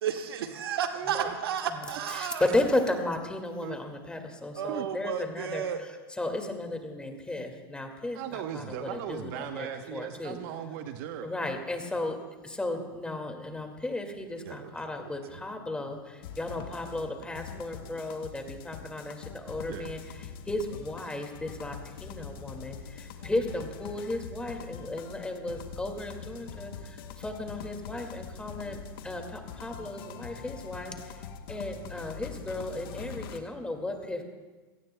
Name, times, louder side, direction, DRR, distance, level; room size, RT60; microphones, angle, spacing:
voice 1, 0.0-2.5 4.5-5.8 14.4-15.4, right 8 dB, 80° right, 6 dB, 1.4 m, -33 dB
voice 2, 0.9-1.3 2.2-2.4 3.6-3.8 4.7-4.9 8.1-11.3 19.7-20.0, right 10 dB, 55° right, 7 dB, 0.9 m, -38 dB
voice 3, 2.2-5.6 6.2-10.4 11.2-12.2 12.4-20.0 20.5-28.8 29.0-31.2 31.5-34.2, left 2 dB, 10° left, 4 dB, 2.1 m, -34 dB
sound 1, 16.2-33.4, left 6 dB, 65° left, 1.2 m, -43 dB
28.5 x 18.0 x 2.2 m, 1.3 s
hypercardioid pair, 110°, 12 cm